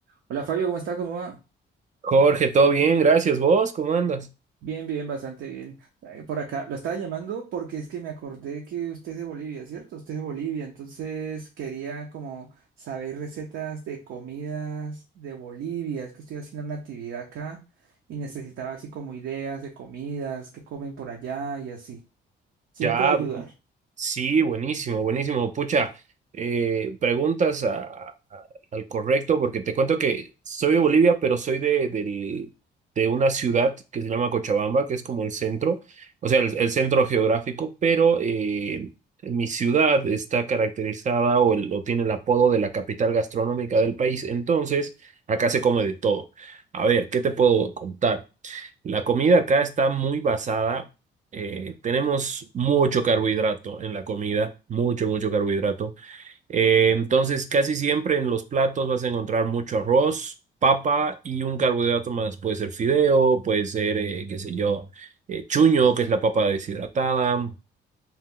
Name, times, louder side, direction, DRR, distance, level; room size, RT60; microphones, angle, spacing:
voice 1, 0.3-1.4 4.6-12.5 12.8-17.6 18.1-22.0 22.7-23.5, right 6 dB, 80° right, 0.6 m, -33 dB
voice 2, 2.0-4.3 22.8-23.2 24.0-25.9 26.3-28.4 28.7-32.5 33.0-38.9 39.2-44.9 45.3-50.8 51.3-60.3 60.6-67.5, right 5 dB, 40° right, 0.4 m, -23 dB
2.9 x 2.1 x 3.6 m
cardioid pair, 90°, 20 cm